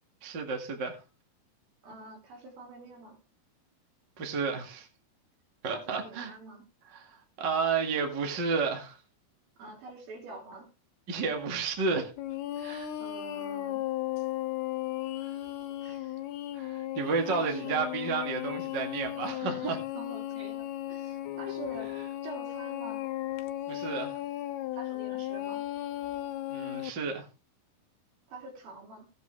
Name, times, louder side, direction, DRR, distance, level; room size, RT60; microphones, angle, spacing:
voice 1, 0.2-1.0 4.2-4.9 5.6-6.3 6.9-7.1 7.4-9.0 11.1-12.1 12.6-12.9 16.6-19.8 23.7-24.1 26.5-27.3, right 5 dB, 35° right, 2.0 m, -31 dB
voice 2, 1.8-3.2 5.7-6.6 9.6-10.7 13.0-13.8 15.8-16.2 17.2-17.8 19.5-21.9 22.2-23.0 24.7-25.7 28.3-29.1, right 2 dB, 65° right, 5.0 m, -46 dB
sound 1, 12.2-26.9, left 14 dB, 85° left, 2.9 m, -36 dB
17.0 x 8.4 x 3.3 m
omnidirectional pair, 4.6 m